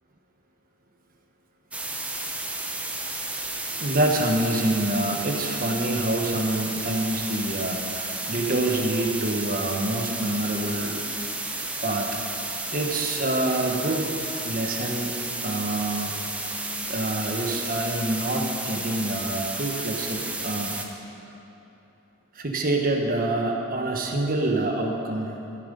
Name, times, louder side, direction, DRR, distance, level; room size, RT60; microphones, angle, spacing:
sound 1, 1.7-20.8, right 2 dB, 5° right, 0.7 m, -32 dB
voice 1, 3.7-11.0 11.8-12.1 12.7-14.1 14.4-15.1 15.4-16.2 16.8-20.8 22.3-25.3, right 2 dB, 45° right, 2 dB, 1.2 m, -26 dB
14.5 x 7.3 x 5.4 m, 2.8 s
head